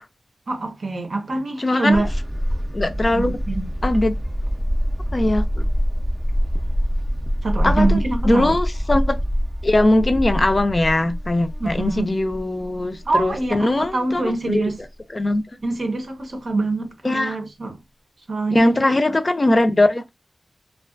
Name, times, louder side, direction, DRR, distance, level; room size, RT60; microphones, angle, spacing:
voice 1, 0.5-2.1 3.1-3.7 7.4-8.6 11.6-12.1 13.0-14.8 15.6-17.8 18.3-18.9, right 2 dB, 60° right, 0.7 m, -24 dB
voice 2, 1.6-2.0 2.7-3.3 3.8-4.2 5.1-5.7 7.6-9.2 9.6-14.7 15.1-15.4 17.0-17.4 18.5-20.1, left 1 dB, 35° left, 0.4 m, -20 dB
sound 1, 1.9-13.9 14.2-14.3 14.7-14.8, equal, 20° right, 0.5 m, -25 dB
2.3 x 2.2 x 2.4 m
wide cardioid pair, 90°, 0 cm